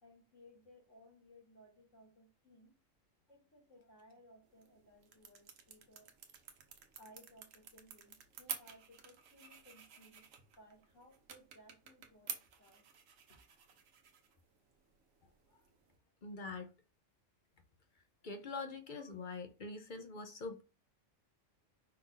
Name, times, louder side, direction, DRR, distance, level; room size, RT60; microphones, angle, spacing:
voice 1, 0.0-2.7 3.3-6.1 6.9-10.3 10.6-12.8, equal, 70° left, 2.5 m, -62 dB
sound 1, 4.4-16.0, right 7 dB, 90° right, 1.2 m, -52 dB
voice 2, 16.2-16.7 18.2-20.6, left 3 dB, 50° left, 0.7 m, -44 dB
5.4 x 2.5 x 3.9 m
omnidirectional pair, 1.3 m